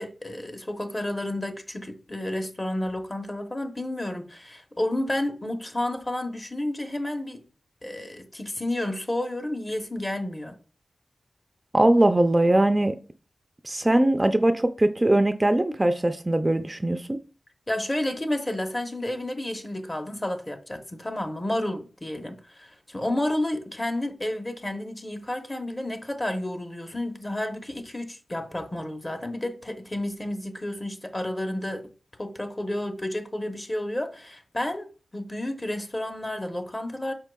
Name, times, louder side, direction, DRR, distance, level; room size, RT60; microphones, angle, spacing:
voice 1, 0.0-7.4 7.8-10.6 17.7-31.9 32.2-34.9 35.1-37.1, left 1 dB, 25° left, 0.8 m, -31 dB
voice 2, 11.7-12.9 13.6-17.2, right 1 dB, 25° right, 0.4 m, -21 dB
4.7 x 4.5 x 2.2 m
cardioid pair, 45°, 0 cm